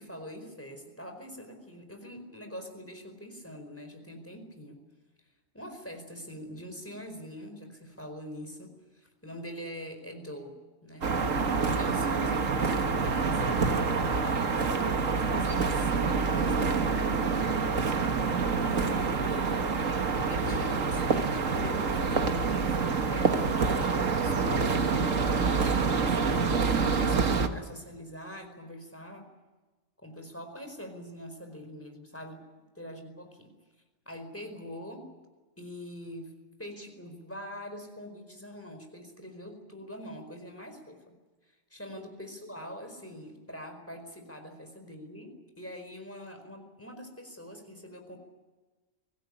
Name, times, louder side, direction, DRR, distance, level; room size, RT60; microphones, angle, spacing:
voice 1, 0.0-4.8 5.5-11.1 11.6-17.4 18.7-19.7 20.3-29.3 30.0-32.4 32.8-33.5 34.0-35.1 35.6-36.3 36.6-41.1 41.7-48.2, equal, 10° left, 5 dB, 4.6 m, -44 dB
sound 1, 11.0-27.5, right 4 dB, 85° right, 1.9 m, -27 dB
24.5 x 17.0 x 9.9 m, 1.3 s
omnidirectional pair, 1.3 m